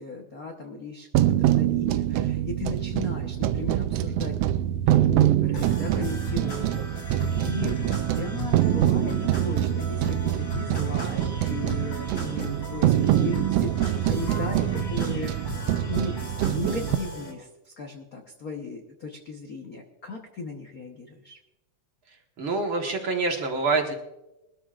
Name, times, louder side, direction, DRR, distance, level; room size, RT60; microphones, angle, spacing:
voice 1, 0.0-4.4 4.7-15.6 15.9-21.4, left 4 dB, 65° left, 1 dB, 0.8 m, -36 dB
sound 1, 1.1-17.0, right 12 dB, 90° right, 1.4 m, -25 dB
sound 2, 5.5-17.3, right 1 dB, 40° left, 4.3 m, -37 dB
voice 2, 22.4-23.9, right 3 dB, 50° right, 2 dB, 2.0 m, -26 dB
22.0 x 13.0 x 2.5 m, 0.95 s
omnidirectional pair, 3.5 m